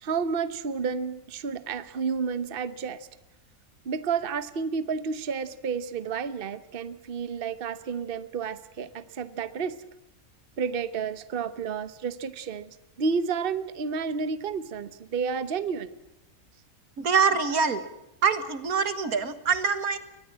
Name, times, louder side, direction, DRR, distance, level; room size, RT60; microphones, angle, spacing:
voice 1, 0.0-3.1 3.8-9.8 10.6-15.9, right 5 dB, 45° right, 13 dB, 1.1 m, -31 dB
voice 2, 17.0-17.8 18.2-20.0, right 5 dB, 90° right, 11 dB, 2.1 m, -24 dB
23.0 x 20.0 x 7.5 m, 0.90 s
omnidirectional pair, 1.5 m